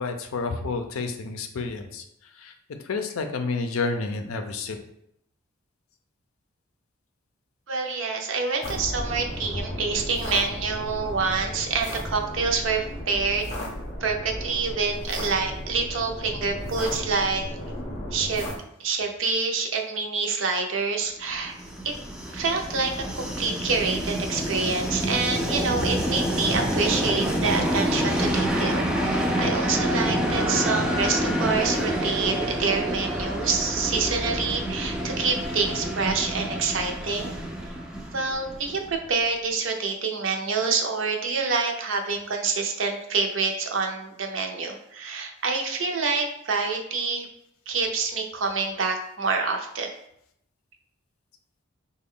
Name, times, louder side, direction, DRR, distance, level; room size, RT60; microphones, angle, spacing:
voice 1, 0.0-2.0 2.4-2.5 2.9-4.8, left 4 dB, 80° left, 6 dB, 0.5 m, -29 dB
voice 2, 7.7-13.5 14.0-17.5 18.1-18.5 18.8-21.6 21.8-21.9 22.3-37.4 38.1-47.3 47.7-50.0, right 4 dB, 65° right, 3 dB, 0.5 m, -27 dB
sound 1, 8.6-18.6, equal, 30° left, 0.6 m, -34 dB
Train, 21.3-39.1, equal, 5° right, 0.3 m, -27 dB
3.8 x 2.2 x 3.6 m, 0.74 s
head